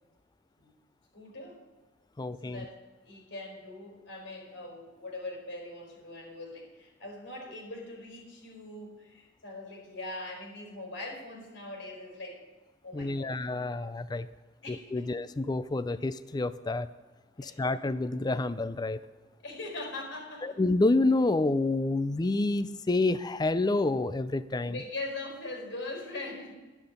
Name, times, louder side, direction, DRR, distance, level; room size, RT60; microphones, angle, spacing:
voice 1, 1.1-1.6 2.4-12.5 12.8-13.3 13.7-13.8 14.6-15.1 17.4-17.6 19.4-20.6 24.6-26.5, left 2 dB, 75° left, 1 dB, 4.6 m, -41 dB
voice 2, 2.2-2.6 12.9-14.3 14.9-16.9 17.4-19.0 20.4-24.8, left 2 dB, 20° left, 15 dB, 0.4 m, -28 dB
11.5 x 11.0 x 5.3 m, 1.2 s
head